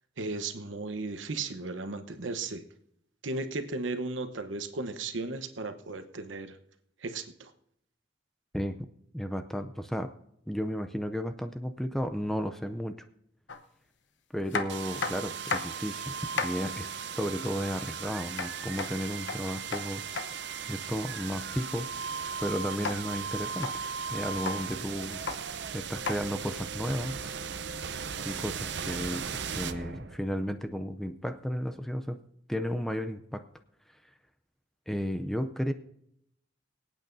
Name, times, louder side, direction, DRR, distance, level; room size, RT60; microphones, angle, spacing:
voice 1, 0.2-2.6 3.2-6.6 7.0-7.5, right 3 dB, 80° right, 9 dB, 1.0 m, -35 dB
voice 2, 8.5-8.9 9.1-10.1 10.5-13.1 14.3-16.2 16.4-20.3 20.7-22.1 22.4-23.7 24.1-25.2 25.7-27.2 28.2-32.2 32.5-33.5 34.9-35.7, equal, ahead, 7 dB, 0.5 m, -33 dB
sound 1, 13.5-13.6 14.5-15.9 16.1-16.6 18.3-20.3 22.8-23.0 23.5-23.7 24.3-24.6 25.1-25.4 26.0-26.2 27.4-27.5, left 4 dB, 70° left, 0.9 m, -33 dB
sound 2, 14.7-30.5, right 6 dB, 60° right, 0.6 m, -37 dB
24.5 x 8.9 x 2.7 m, 0.73 s
head